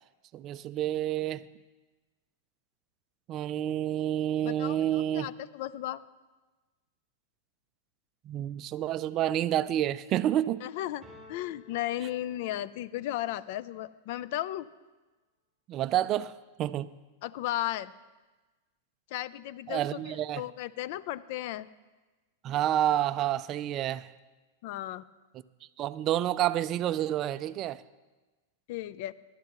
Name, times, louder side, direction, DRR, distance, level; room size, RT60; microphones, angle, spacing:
voice 1, 0.3-1.5 3.3-5.3 8.3-10.6 15.7-17.0 19.7-20.4 22.4-24.1 25.8-27.8, right 12 dB, 35° right, 0.3 m, -29 dB
voice 2, 4.4-6.0 10.6-11.0 11.3-14.7 17.2-17.9 19.1-21.7 24.6-25.0 28.7-29.1, left 14 dB, 55° left, 0.4 m, -35 dB
sound 1, 11.0-13.0, left 2 dB, 5° right, 4.2 m, -54 dB
16.0 x 12.0 x 3.0 m
supercardioid pair, 140°, 0 cm